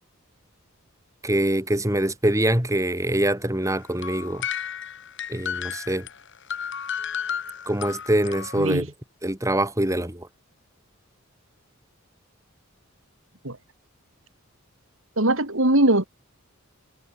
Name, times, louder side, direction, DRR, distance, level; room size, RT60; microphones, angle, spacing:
voice 1, 1.2-4.4 5.3-6.1 7.7-8.9 9.2-10.3, right 1 dB, 15° right, 4.5 m, -24 dB
sound 1, 3.6-8.7, left 8 dB, 60° left, 4.8 m, -33 dB
voice 2, 15.2-16.1, right 1 dB, 65° right, 4.9 m, -20 dB
head